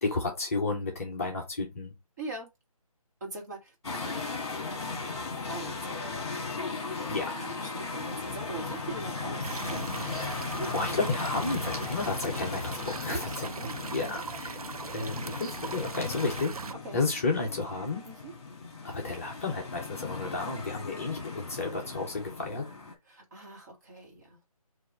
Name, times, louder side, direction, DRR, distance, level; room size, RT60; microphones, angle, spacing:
voice 1, 0.0-2.0 7.1-7.4 10.0-10.4 10.7-14.6 14.9-16.6 16.9-18.1 18.8-22.7, left 3 dB, 25° left, 0.8 m, -32 dB
voice 2, 2.2-2.5 3.2-4.2 5.5-6.1 7.3-11.4 13.1-13.7 14.0-14.2 16.8-17.0 18.0-18.3 23.1-24.5, right 2 dB, 30° right, 1.5 m, -42 dB
sound 1, 3.8-22.9, left 4 dB, 45° left, 1.9 m, -37 dB
sound 2, 9.4-16.7, right 4 dB, 70° right, 0.6 m, -40 dB
4.6 x 2.7 x 4.3 m
figure-of-eight pair, 165°, 19 cm